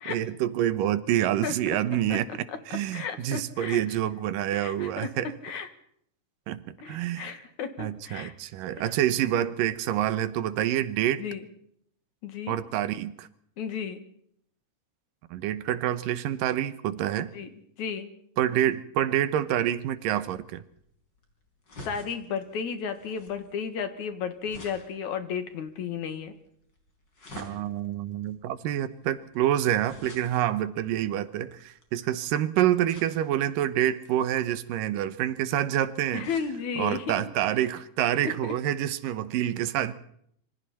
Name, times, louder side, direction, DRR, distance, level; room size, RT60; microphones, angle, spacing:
voice 1, 0.1-5.3 6.5-7.4 7.8-11.2 12.5-13.3 15.3-17.3 18.4-20.6 27.4-36.3 36.8-39.9, right 12 dB, 90° right, 14 dB, 2.7 m, -27 dB
voice 2, 1.4-1.8 2.1-2.2 2.9-3.8 4.5-5.7 6.8-8.3 8.8-8.9 11.2-11.5 12.2-12.6 13.6-14.0 17.2-17.5 17.8-18.1 21.8-26.3 36.1-37.2 38.2-38.5, left 6 dB, 65° left, 9 dB, 3.0 m, -34 dB
sound 1, 19.5-32.2 32.9-33.5 34.0-36.5 37.0-37.1 37.3-37.4, left 2 dB, 30° left, 5.0 m, -50 dB
26.5 x 24.5 x 4.3 m, 0.69 s
omnidirectional pair, 3.7 m